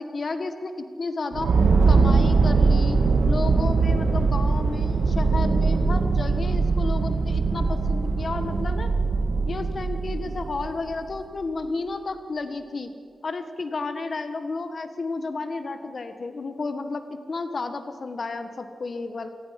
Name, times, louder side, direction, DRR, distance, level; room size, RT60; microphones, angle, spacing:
voice 1, 0.0-1.5 1.9-3.0 3.3-8.9 9.5-12.9 13.2-19.3, left 3 dB, 45° left, 8 dB, 1.5 m, -32 dB
sound 1, 1.3-10.9, right 4 dB, 80° right, 1.9 m, -21 dB
26.5 x 18.5 x 6.0 m, 2.2 s
wide cardioid pair, 160°, 0 cm